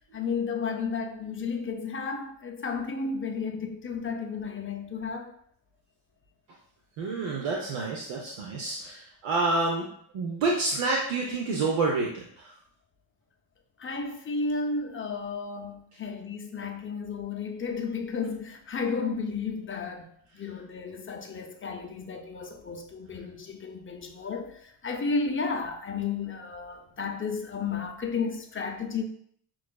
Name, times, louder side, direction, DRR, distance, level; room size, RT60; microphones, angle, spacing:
voice 1, 0.1-5.3 13.8-20.1 20.3-29.0, left 4 dB, 25° left, 0.5 m, -33 dB
voice 2, 7.0-9.9 10.1-12.5, right 3 dB, 80° right, 0.8 m, -28 dB
6.0 x 2.4 x 2.2 m
cardioid pair, 90°, 50 cm